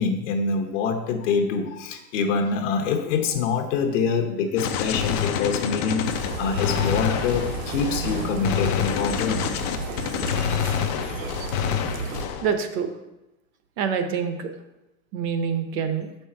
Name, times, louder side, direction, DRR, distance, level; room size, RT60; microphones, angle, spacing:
voice 1, 0.0-9.5, left 5 dB, 60° left, 3 dB, 1.0 m, -25 dB
Gunshot gunfire, 4.6-12.6, left 8 dB, 30° left, 0.4 m, -27 dB
sound 1, 6.0-12.3, right 5 dB, 70° right, 1.1 m, -33 dB
voice 2, 12.4-12.9 13.8-14.5 15.1-16.1, right 6 dB, 30° right, 7 dB, 0.7 m, -26 dB
6.8 x 5.5 x 4.4 m, 0.96 s
supercardioid pair, 155°, 41 cm